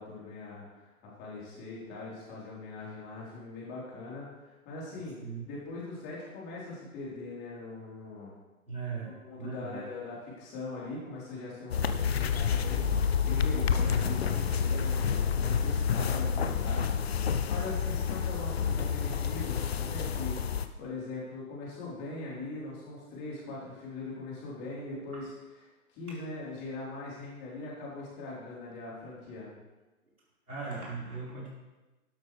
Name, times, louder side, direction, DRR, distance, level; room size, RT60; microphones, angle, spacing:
voice 1, 0.0-5.2 5.4-8.3 9.1-25.3 25.9-29.5, left 2 dB, 25° left, -5 dB, 4.0 m, -41 dB
voice 2, 8.7-9.8 25.1-25.2 30.5-31.5, right 4 dB, 70° right, -6 dB, 4.5 m, -39 dB
sound 1, 11.7-20.7, left 6 dB, 45° left, 0.7 m, -29 dB
12.5 x 12.0 x 3.3 m, 1.1 s
figure-of-eight pair, 125°, 44 cm